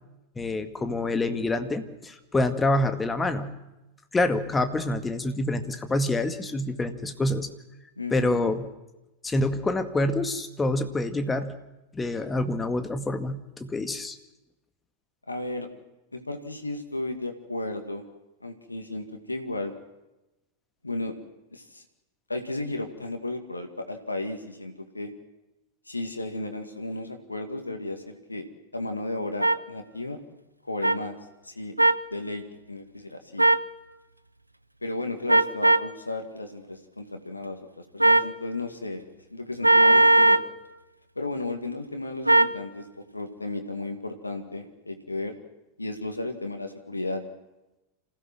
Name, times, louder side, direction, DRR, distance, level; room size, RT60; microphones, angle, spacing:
voice 1, 0.4-3.6 4.1-7.5 8.1-8.7 9.2-11.6 11.9-14.2, left 2 dB, 15° left, 8 dB, 1.9 m, -27 dB
voice 2, 8.0-8.5 15.3-15.7 16.1-18.0 18.4-19.7 20.8-21.2 21.5-21.8 22.3-25.1 25.9-28.5 28.7-30.2 30.6-31.2 31.4-31.7 32.1-33.5 34.8-39.0 39.3-40.4 41.2-45.4 45.8-47.2, left 2 dB, 80° left, 6 dB, 2.2 m, -34 dB
sound 1, 29.4-29.6 30.8-31.0 31.8-32.0 33.4-33.7 35.3-35.9 38.0-38.3 39.6-40.5 42.3-42.6, right 2 dB, 85° right, 0.7 m, -18 dB
27.0 x 16.5 x 6.2 m, 0.98 s
figure-of-eight pair, 90°, 0 cm